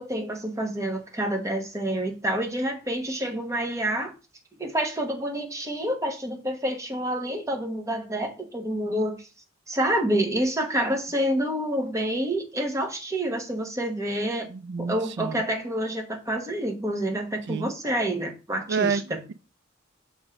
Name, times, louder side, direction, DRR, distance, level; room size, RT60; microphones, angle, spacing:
voice 1, 0.0-4.1 4.6-9.3 9.7-14.5 14.8-19.2, right 1 dB, 15° right, 1.0 m, -28 dB
voice 2, 14.5-15.4 17.5-17.7 18.7-19.3, right 5 dB, 60° right, 0.4 m, -29 dB
6.2 x 3.1 x 4.9 m
head